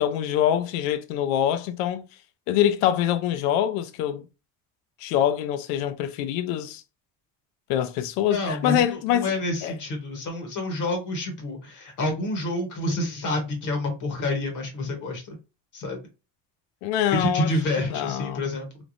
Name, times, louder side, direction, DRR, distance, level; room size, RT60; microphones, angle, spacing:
voice 1, 0.0-2.0 2.5-4.2 5.0-6.8 7.7-9.3 9.6-9.7 16.8-17.5 17.9-18.4, left 11 dB, 85° left, 0.6 m, -24 dB
voice 2, 8.3-15.4 15.7-16.0 17.1-18.7, left 1 dB, 40° left, 1.0 m, -28 dB
3.2 x 2.0 x 2.5 m
supercardioid pair, 115°, 47 cm